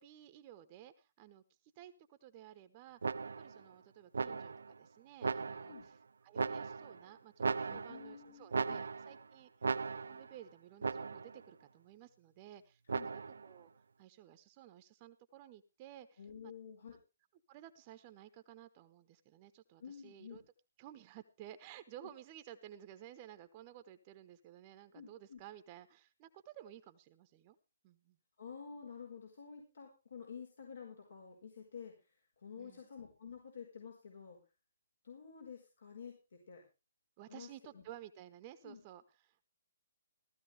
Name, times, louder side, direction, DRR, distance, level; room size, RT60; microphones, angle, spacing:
voice 1, 0.0-5.9 6.2-9.5 10.0-13.7 14.0-16.5 17.5-20.4 20.8-27.6 27.8-28.2 32.5-32.8 37.2-39.4, right 12 dB, 30° right, 10 dB, 1.1 m, -55 dB
sound 1, 3.0-3.6 4.1-4.7 5.2-5.9 6.4-7.0 7.4-8.2 8.5-9.2 9.6-10.3 10.8-11.4 12.9-13.5, right 4 dB, 80° right, 0.7 m, -37 dB
voice 2, 7.7-8.8 12.9-13.1 16.2-17.0 19.8-20.4 24.9-25.4 28.4-34.4 35.0-36.6 37.3-37.8 38.6-38.8, left 6 dB, 70° left, 1 dB, 5.1 m, -50 dB
16.0 x 14.0 x 3.4 m, 0.30 s
hypercardioid pair, 145°, 0 cm